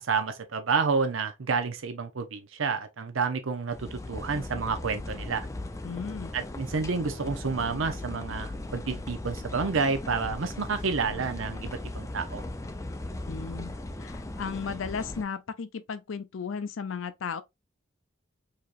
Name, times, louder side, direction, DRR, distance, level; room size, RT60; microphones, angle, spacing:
voice 1, 0.1-5.5 6.3-12.4, right 5 dB, 75° right, 0.7 m, -29 dB
sound 1, 3.7-15.2, left 2 dB, 15° left, 0.5 m, -38 dB
voice 2, 5.8-6.3 13.3-13.7 14.0-17.4, left 6 dB, 70° left, 0.5 m, -35 dB
4.9 x 2.9 x 2.4 m
head